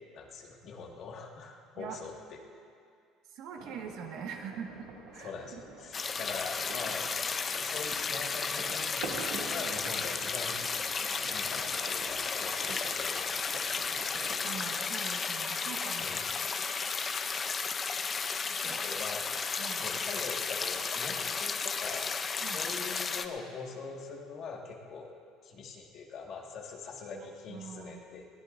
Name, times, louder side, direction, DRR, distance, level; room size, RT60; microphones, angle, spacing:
voice 1, 0.1-2.4 5.2-7.1 7.5-10.6 11.3-13.8 16.0-16.3 18.6-19.3 19.8-22.1 22.4-25.1 25.4-28.3, left 5 dB, 45° left, 0 dB, 1.8 m, -43 dB
voice 2, 3.3-5.6 14.4-16.1 18.6-18.8 19.6-19.8 22.4-22.6 27.1-27.2 27.5-28.0, right 6 dB, 60° right, 2 dB, 1.6 m, -43 dB
sound 1, 3.6-14.9, right 5 dB, 85° right, 2.4 m, -47 dB
sound 2, 5.9-23.3, left 5 dB, 25° left, 0.6 m, -33 dB
21.5 x 18.5 x 2.6 m, 2.2 s
cardioid pair, 155°, 0 cm